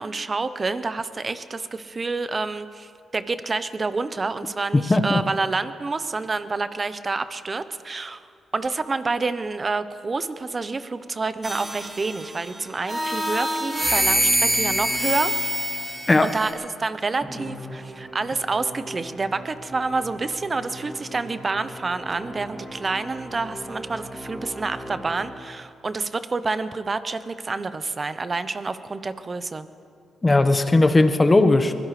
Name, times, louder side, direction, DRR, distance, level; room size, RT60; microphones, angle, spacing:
voice 1, 0.0-8.2 8.5-15.3 16.2-29.7, right 3 dB, 40° right, 12 dB, 0.9 m, -28 dB
voice 2, 4.9-5.2 16.1-16.3 30.2-31.7, left 2 dB, 25° left, 8 dB, 1.3 m, -17 dB
sound 1, 11.4-12.4 12.9-16.5, right 1 dB, 20° right, 3.4 m, -25 dB
Musical instrument, 17.2-25.8, equal, ahead, 2.5 m, -39 dB
23.5 x 16.5 x 3.3 m, 2.3 s
supercardioid pair, 55°, 0 cm